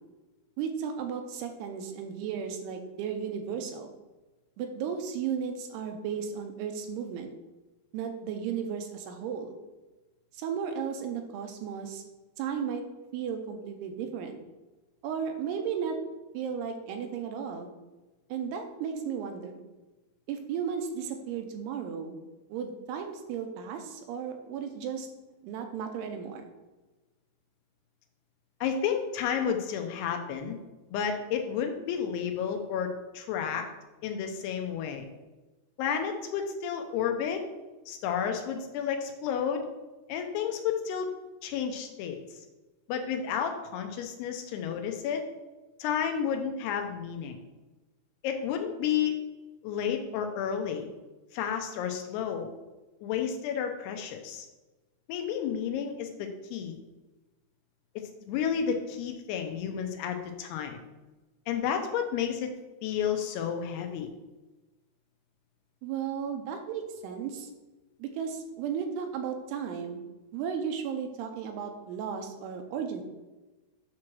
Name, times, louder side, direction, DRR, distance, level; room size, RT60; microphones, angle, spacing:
voice 1, 0.6-3.9 4.6-7.3 7.9-9.6 10.3-12.0 12.4-12.8 13.1-14.4 15.0-16.0 16.3-17.7 18.3-19.6 20.3-22.2 22.5-25.1 25.4-26.5 65.8-67.5 68.0-70.0 70.3-73.0, right 7 dB, 85° right, 5 dB, 2.7 m, -34 dB
voice 2, 28.6-30.6 30.9-33.7 34.0-35.1 35.8-37.5 37.9-39.7 40.1-41.1 41.4-42.2 42.9-45.2 45.8-47.4 48.2-49.2 49.6-50.9 51.3-52.5 53.0-54.5 55.1-56.8 58.0-60.8 61.5-62.5 62.8-64.1, left 8 dB, 90° left, 5 dB, 2.8 m, -31 dB
8.5 x 3.1 x 6.1 m, 1.1 s
omnidirectional pair, 4.7 m